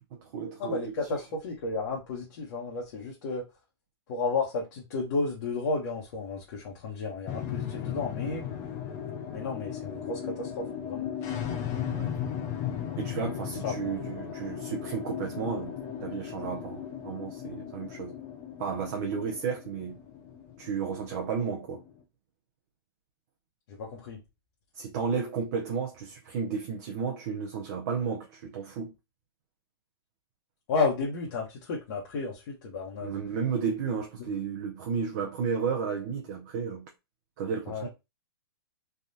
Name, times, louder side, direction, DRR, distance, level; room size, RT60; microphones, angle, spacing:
voice 1, 0.0-0.9 11.9-12.2 13.0-18.2 18.6-20.0 20.6-21.8 24.7-28.9 33.0-36.9 37.4-37.9, right 6 dB, 40° right, 0.6 m, -33 dB
voice 2, 0.6-3.4 4.1-8.5 9.3-11.1 13.6-13.7 23.8-24.2 30.7-33.2 37.7-37.9, left 4 dB, 45° left, 1.0 m, -32 dB
sound 1, 7.3-21.9, left 9 dB, 20° left, 0.4 m, -36 dB
3.5 x 2.3 x 2.7 m
hypercardioid pair, 155°, 14 cm